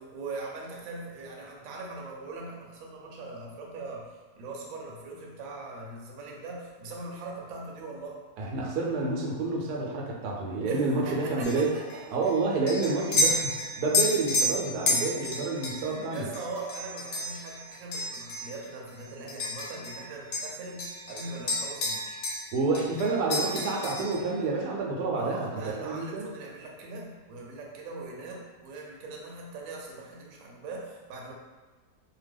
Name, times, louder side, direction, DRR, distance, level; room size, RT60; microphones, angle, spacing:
voice 1, 0.1-8.2 10.7-12.2 15.2-15.4 15.7-22.2 25.2-31.3, right 3 dB, 70° right, -1 dB, 0.9 m, -41 dB
voice 2, 8.4-11.7 12.1-16.2 22.5-26.3, right 3 dB, 90° right, -1 dB, 1.1 m, -29 dB
sound 1, 11.4-20.0 20.3-22.5 22.7-24.3, left 1 dB, 75° left, 1.1 m, -31 dB
2.8 x 2.1 x 3.4 m, 1.4 s
omnidirectional pair, 1.6 m